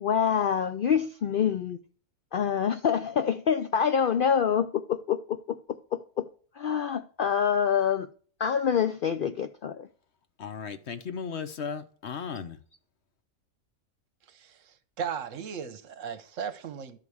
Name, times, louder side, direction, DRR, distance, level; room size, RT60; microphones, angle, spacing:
voice 1, 0.0-1.8 2.3-5.6 5.9-6.3 6.6-8.1 8.4-9.9, left 7 dB, 80° left, 0.4 m, -26 dB
voice 2, 10.4-12.6, left 6 dB, 55° left, 1.0 m, -36 dB
voice 3, 14.3-17.0, right 7 dB, 65° right, 1.1 m, -37 dB
11.5 x 4.8 x 7.0 m
omnidirectional pair, 1.5 m